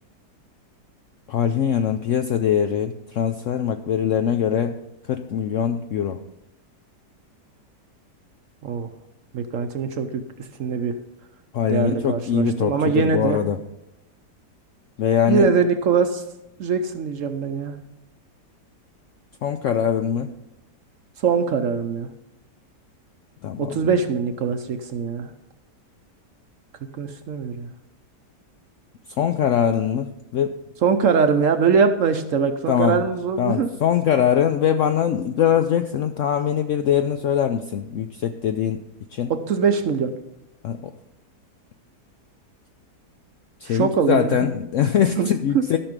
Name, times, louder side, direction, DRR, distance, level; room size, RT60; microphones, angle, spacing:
voice 1, 1.3-4.8 5.1-6.2 11.5-13.6 15.0-15.5 19.4-20.3 23.4-23.7 29.2-30.6 32.7-33.0 33.4-38.8 39.1-39.3 40.6-40.9 43.6-45.8, left 8 dB, 75° left, 7 dB, 0.7 m, -22 dB
voice 2, 9.3-10.2 10.6-10.9 11.7-13.4 15.3-16.2 16.6-17.7 21.2-22.1 23.6-25.3 26.9-27.7 30.8-33.7 39.3-40.1 43.7-44.5 45.2-45.3 45.5-45.6, right 6 dB, 60° right, 8 dB, 0.9 m, -22 dB
13.0 x 6.1 x 5.1 m, 0.89 s
omnidirectional pair, 1.8 m